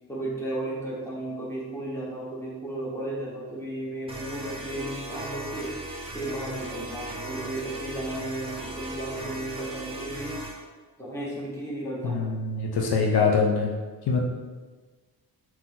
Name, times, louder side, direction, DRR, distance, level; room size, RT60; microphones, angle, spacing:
voice 1, 0.1-5.7 6.1-10.4 11.0-12.3, right 1 dB, 5° left, -6 dB, 1.1 m, -34 dB
sound 1, 4.1-10.6, right 2 dB, 15° right, 0.8 m, -37 dB
voice 2, 12.0-13.7 14.1-14.2, left 4 dB, 65° left, 0 dB, 0.7 m, -23 dB
4.0 x 3.0 x 3.8 m, 1.4 s
wide cardioid pair, 125°, 40 cm